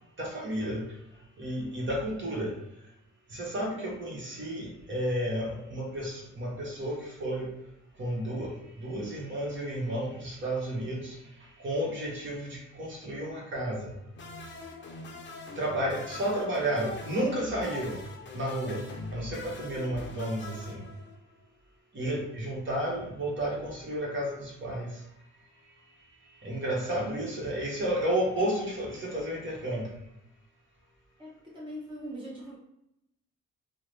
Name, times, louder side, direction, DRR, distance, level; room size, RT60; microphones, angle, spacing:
voice 1, 0.2-0.8 1.4-2.5 3.3-7.5 8.0-8.5 8.8-11.2 11.6-13.9 15.6-18.0 18.3-18.8 19.1-20.8 21.9-24.9 26.4-29.8, right 1 dB, 40° right, -3 dB, 1.1 m, -32 dB
sound 1, 14.1-21.4, left 3 dB, 40° left, 0.6 m, -44 dB
voice 2, 31.2-32.6, equal, 15° right, -6 dB, 1.0 m, -41 dB
3.5 x 2.1 x 3.2 m, 0.82 s
cardioid pair, 90°, 30 cm